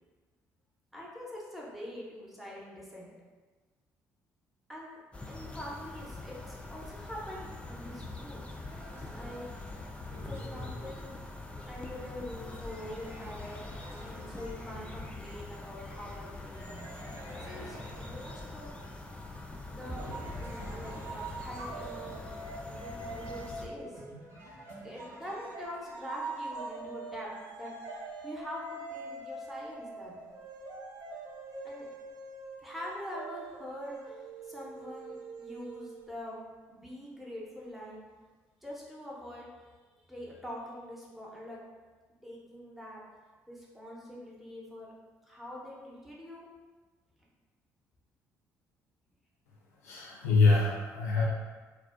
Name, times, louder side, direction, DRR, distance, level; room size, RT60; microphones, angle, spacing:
voice 1, 0.9-3.1 4.7-5.0 5.3-8.5 9.1-9.8 10.2-11.2 11.7-16.8 17.3-18.7 19.6-20.1 20.4-22.2 22.7-24.0 24.8-30.3 31.6-31.9 32.6-36.4 36.7-38.0 38.6-39.7 40.1-41.6 42.2-43.0 43.5-44.9 45.3-46.5, left 1 dB, ahead, -5 dB, 0.7 m, -44 dB
sound 1, 5.1-23.7, left 2 dB, 15° left, 0.3 m, -44 dB
sound 2, 7.8-15.2 16.5-19.4 19.8-26.3, right 1 dB, 30° right, 0.9 m, -49 dB
sound 3, 20.1-24.4 25.0-36.3, right 3 dB, 60° right, 0.4 m, -44 dB
voice 2, 49.8-51.3, left 3 dB, 85° left, -4 dB, 0.4 m, -25 dB
2.4 x 2.1 x 2.4 m, 1.4 s
hypercardioid pair, 50°, 8 cm